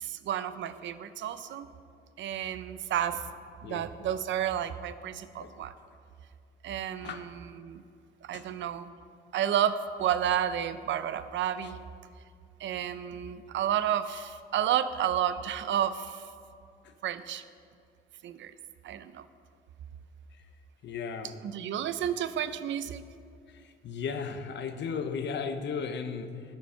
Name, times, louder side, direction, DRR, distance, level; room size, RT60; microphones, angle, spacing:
voice 1, 0.0-1.7 2.2-3.2 3.6-5.7 6.6-7.8 8.2-8.9 9.3-11.8 12.6-16.2 17.0-17.4 18.2-18.5 18.8-19.2 21.4-23.0, right 10 dB, 70° right, 13 dB, 0.6 m, -31 dB
voice 2, 20.8-21.3 23.5-26.4, left 6 dB, 65° left, 8 dB, 0.9 m, -35 dB
10.5 x 8.9 x 5.6 m, 2.3 s
cardioid pair, 90°, 20 cm